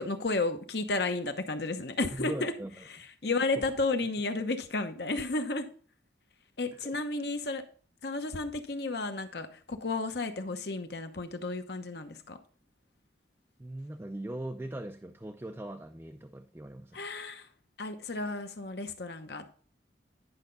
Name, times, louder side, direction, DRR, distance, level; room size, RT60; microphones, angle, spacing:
voice 1, 0.0-2.5 2.9-5.7 6.6-7.6 8.0-12.4 16.9-17.5 17.8-19.4, left 3 dB, 60° left, 7 dB, 1.0 m, -32 dB
voice 2, 2.1-2.9 3.3-3.7 6.7-6.9 13.6-17.1, right 1 dB, 15° right, 5 dB, 0.4 m, -40 dB
10.5 x 5.7 x 3.9 m, 0.43 s
head